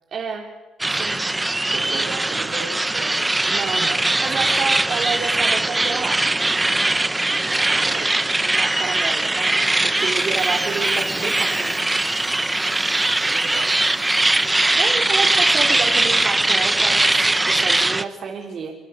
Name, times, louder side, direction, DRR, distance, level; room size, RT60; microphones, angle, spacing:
voice 1, 0.1-0.5 1.0-1.2 3.5-6.3 8.4-11.8 14.5-18.8, right 5 dB, 60° right, 3.8 m, -30 dB
sound 1, 0.8-18.0, right 2 dB, 15° right, 1.3 m, -20 dB
voice 2, 1.7-3.3 7.4-8.2 13.2-13.9, right 6 dB, 85° right, 3.7 m, -36 dB
Harmonica, 10.0-15.0, left 6 dB, 60° left, 5.5 m, -44 dB
27.0 x 26.5 x 8.3 m
cardioid pair, 90°, 0 cm